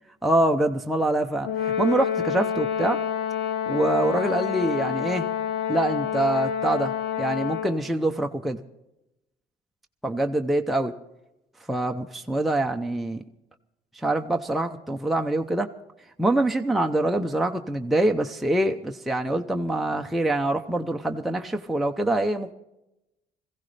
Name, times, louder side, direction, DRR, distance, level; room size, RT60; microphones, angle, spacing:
voice 1, 0.2-3.0 3.7-5.3 5.7-6.9 7.2-8.6 10.0-10.9 11.7-13.2 13.9-15.7 16.2-22.5, right 1 dB, ahead, 3 dB, 0.7 m, -25 dB
Brass instrument, 1.4-7.8, left 8 dB, 90° left, 1.6 m, -28 dB
22.0 x 15.5 x 3.4 m, 0.91 s
cardioid pair, 110°, 17 cm